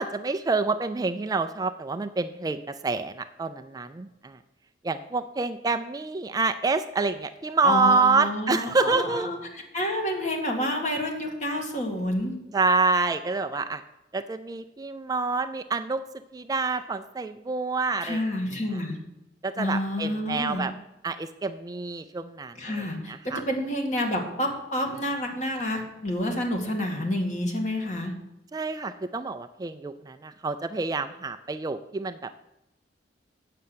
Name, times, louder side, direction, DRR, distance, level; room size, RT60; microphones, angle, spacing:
voice 1, 0.0-4.4 4.8-9.3 12.5-13.8 14.1-16.0 16.3-18.2 19.4-20.7 21.0-23.4 28.5-32.4, right 4 dB, 20° right, 9 dB, 0.3 m, -27 dB
voice 2, 7.6-12.3 18.0-19.0 19.6-20.6 22.6-28.1, left 1 dB, 45° left, 2 dB, 2.1 m, -29 dB
8.4 x 6.7 x 7.8 m, 0.89 s
head